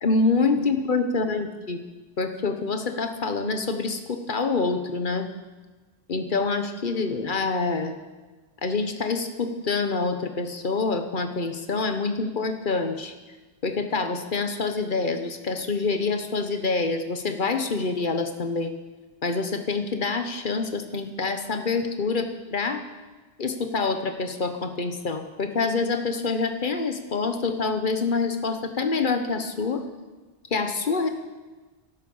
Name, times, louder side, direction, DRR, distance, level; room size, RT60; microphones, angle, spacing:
voice 1, 0.0-1.8 2.2-5.3 6.1-7.9 8.6-13.1 13.6-18.7 19.2-22.8 23.4-29.8 30.5-31.1, left 4 dB, 50° left, 7 dB, 1.3 m, -26 dB
15.5 x 11.5 x 5.6 m, 1.2 s
omnidirectional pair, 1.1 m